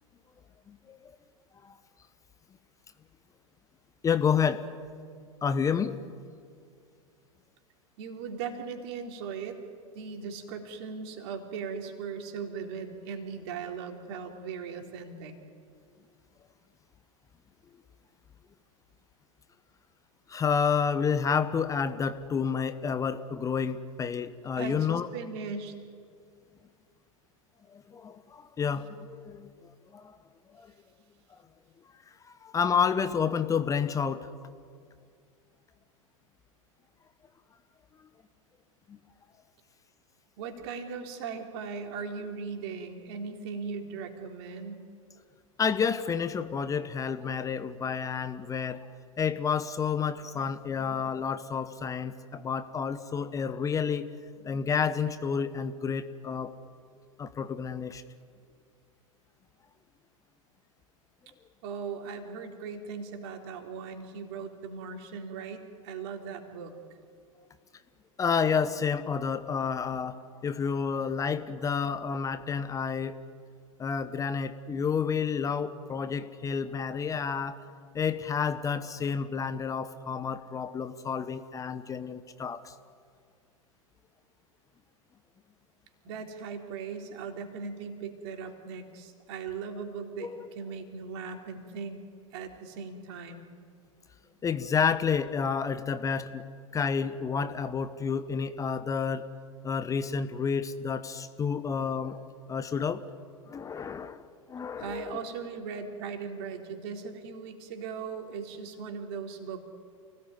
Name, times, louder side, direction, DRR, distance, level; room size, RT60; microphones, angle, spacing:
voice 1, 0.7-1.1 1.6-1.7 4.0-4.6 5.4-5.9 20.3-25.1 27.7-30.2 30.5-30.7 32.3-34.3 38.9-39.0 45.6-48.8 49.2-54.1 54.4-56.5 57.2-58.0 68.2-73.2 73.8-77.6 77.9-82.7 90.2-90.5 94.4-96.4 96.7-99.3 99.6-102.2 102.5-103.0 103.5-105.2, left 6 dB, 20° left, 12 dB, 1.0 m, -30 dB
voice 2, 8.0-9.6 9.9-15.4 24.6-25.8 40.4-44.8 61.6-66.7 86.0-92.0 92.3-93.5 104.8-109.6, right 5 dB, 50° right, 3 dB, 3.9 m, -38 dB
29.5 x 19.0 x 9.6 m, 2.2 s
figure-of-eight pair, 90°, 17 cm